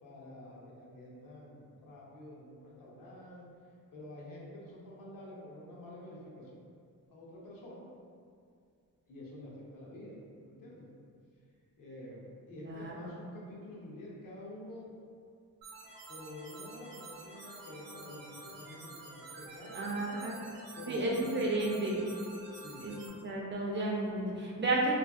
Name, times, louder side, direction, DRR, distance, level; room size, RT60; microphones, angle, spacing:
voice 1, 0.0-3.5 3.9-6.5 7.1-7.8 9.1-10.2 10.5-10.9 11.8-14.9 16.1-20.2 20.7-21.1 22.5-22.8, left 1 dB, 70° left, -4 dB, 0.7 m, -48 dB
voice 2, 12.6-13.1 19.7-20.3 20.9-22.0 22.8-22.9 23.2-25.0, right 2 dB, 35° right, -3 dB, 0.4 m, -32 dB
sound 1, 15.6-23.1, right 2 dB, 75° right, 0.6 m, -49 dB
2.6 x 2.6 x 2.3 m, 2.2 s
cardioid pair, 120°, 34 cm